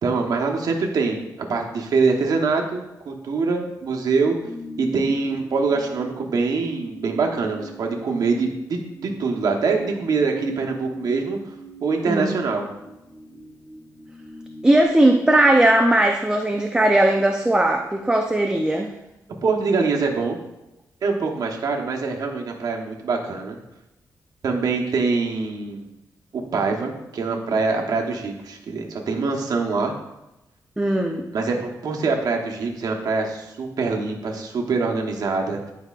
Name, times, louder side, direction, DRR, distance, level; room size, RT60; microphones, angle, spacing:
voice 1, 0.0-4.4 4.8-11.4 11.8-12.7 19.4-20.4 21.0-23.6 24.4-25.8 26.3-29.9 31.3-35.7, right 4 dB, 65° right, 1 dB, 1.1 m, -24 dB
sound 1, 4.4-14.8, right 2 dB, 5° left, 2.4 m, -41 dB
voice 2, 12.0-12.4 14.6-18.9 30.8-31.3, right 1 dB, 10° right, 3 dB, 0.5 m, -18 dB
10.0 x 4.7 x 2.4 m, 0.93 s
cardioid pair, 90°, 7 cm